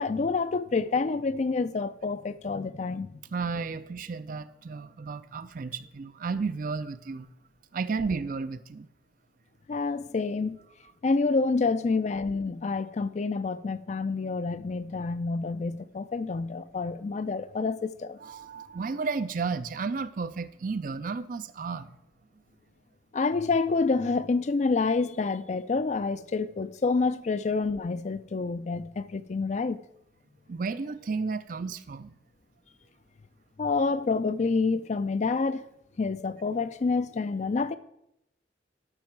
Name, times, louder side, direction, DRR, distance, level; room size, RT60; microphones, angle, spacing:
voice 1, 0.0-3.2 9.7-10.6 11.0-18.2 23.1-29.8 33.6-35.7 36.0-37.8, left 4 dB, 40° left, 0.4 m, -28 dB
voice 2, 3.3-7.3 7.7-8.9 18.2-22.0 30.5-32.1, right 4 dB, 50° right, 0.4 m, -33 dB
12.5 x 5.7 x 4.5 m
head